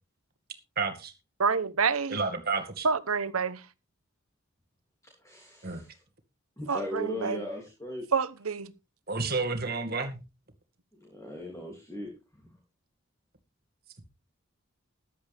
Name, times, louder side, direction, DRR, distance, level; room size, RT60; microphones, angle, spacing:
voice 1, 0.8-1.1 2.1-2.9 5.6-5.8 9.1-10.2, right 4 dB, 45° right, 2.1 m, -30 dB
voice 2, 1.4-2.2 2.8-3.7 6.7-7.5 8.1-8.7, right 5 dB, 85° right, 1.1 m, -28 dB
voice 3, 5.2-6.0 6.6-8.0 11.0-12.1, equal, 15° left, 2.9 m, -38 dB
14.5 x 11.0 x 3.5 m
head